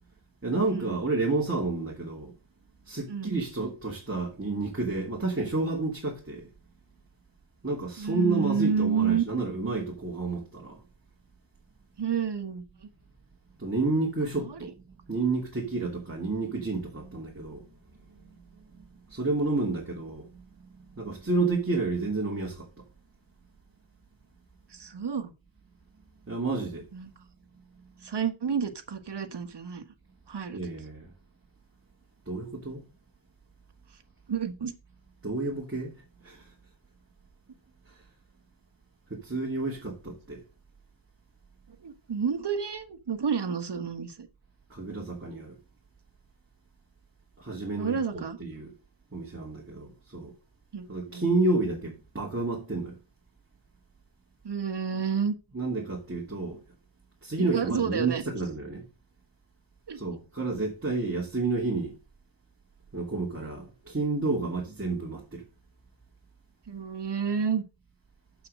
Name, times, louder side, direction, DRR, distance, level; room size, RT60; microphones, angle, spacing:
voice 1, 0.4-2.3 2.9-6.5 7.6-10.8 13.6-14.7 15.1-17.7 18.1-18.2 19.1-20.4 21.0-22.7 26.3-26.9 30.5-31.1 32.3-32.8 35.2-35.9 36.2-36.5 39.1-40.4 44.7-45.6 47.4-48.7 49.1-50.3 50.9-52.9 55.5-56.6 57.2-58.8 59.9-62.0 62.9-65.4, right 3 dB, 25° right, 2.8 m, -30 dB
voice 2, 3.1-3.4 8.0-9.2 12.0-12.9 14.4-14.7 21.4-21.6 24.7-25.3 26.9-27.1 28.0-29.8 30.3-30.6 34.3-34.7 41.8-44.3 47.8-48.4 50.7-51.2 54.4-55.3 57.4-58.2 59.9-60.0 66.7-67.6, right 6 dB, 55° right, 1.6 m, -30 dB
7.7 x 5.8 x 6.5 m
cardioid pair, 60°, 49 cm